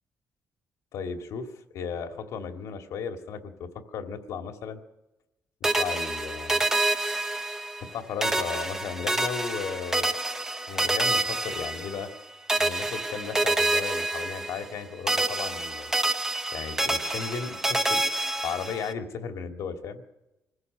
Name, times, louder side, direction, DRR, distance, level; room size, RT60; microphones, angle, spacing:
voice 1, 0.9-1.5 1.7-3.7 3.9-4.8 5.6-6.6 7.8-10.1 10.7-12.1 12.6-15.9 16.5-18.0 18.4-20.0, left 6 dB, 80° left, 5 dB, 2.2 m, -35 dB
sound 1, 5.6-7.9 8.2-12.2 12.5-14.8 15.1-18.9, right 2 dB, 10° right, 1.0 m, -28 dB
25.0 x 16.0 x 6.7 m, 0.98 s
cardioid pair, 155°, 5 cm